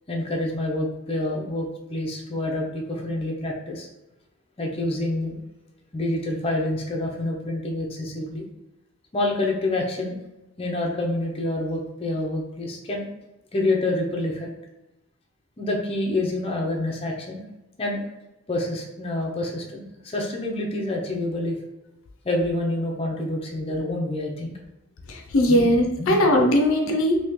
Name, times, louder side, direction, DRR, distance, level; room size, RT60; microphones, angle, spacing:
voice 1, 0.1-3.9 4.6-5.4 5.9-8.4 9.1-10.2 10.6-13.1 13.5-14.5 15.6-17.4 17.8-18.0 18.5-21.6 22.2-24.5 25.5-25.7 26.0-26.2, left 1 dB, 30° left, -1 dB, 0.6 m, -27 dB
voice 2, 25.1-27.2, left 1 dB, 70° left, 2 dB, 0.6 m, -20 dB
2.9 x 2.8 x 3.5 m, 0.94 s
head